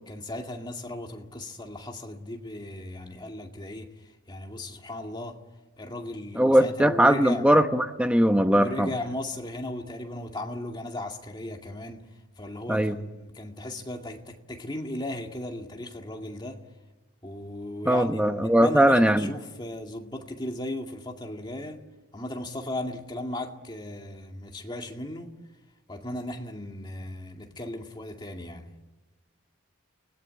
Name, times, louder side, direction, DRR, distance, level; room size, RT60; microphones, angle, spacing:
voice 1, 0.1-3.9 4.3-5.4 5.8-7.5 8.5-12.1 12.4-16.6 17.2-21.8 22.1-25.3 25.9-28.7, left 1 dB, 20° left, 2.1 m, -36 dB
voice 2, 6.4-8.9 12.7-13.0 17.8-19.3, right 1 dB, 5° right, 1.0 m, -20 dB
30.0 x 19.0 x 8.9 m
head